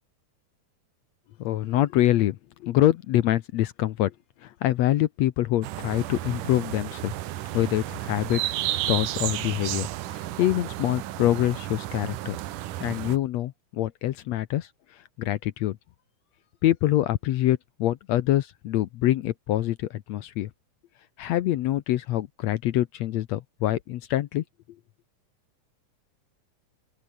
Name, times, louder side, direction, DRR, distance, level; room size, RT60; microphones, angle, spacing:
voice 1, 1.4-2.4 2.6-4.1 4.4-7.1 7.5-8.5 8.9-9.9 10.1-12.4 12.8-15.8 16.6-20.5 21.2-24.4, left 14 dB, 70° left, 1.8 m, -25 dB
sound 1, 5.6-13.2, right 14 dB, 80° right, 2.6 m, -32 dB
open air
omnidirectional pair, 3.6 m